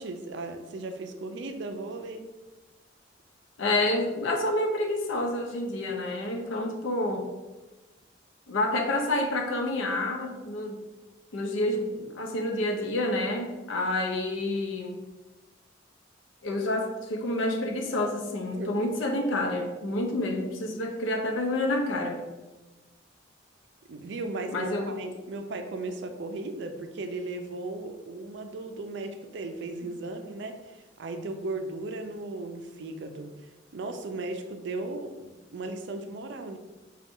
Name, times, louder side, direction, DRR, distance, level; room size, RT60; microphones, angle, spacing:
voice 1, 0.0-2.3 18.5-18.9 20.7-20.8 23.9-33.3 33.7-36.6, right 2 dB, 65° right, 6 dB, 0.4 m, -36 dB
voice 2, 3.6-7.3 8.5-10.8 11.3-15.0 16.4-22.2 24.5-25.0, left 1 dB, 80° left, 2 dB, 0.6 m, -28 dB
4.0 x 2.3 x 3.6 m, 1.1 s
head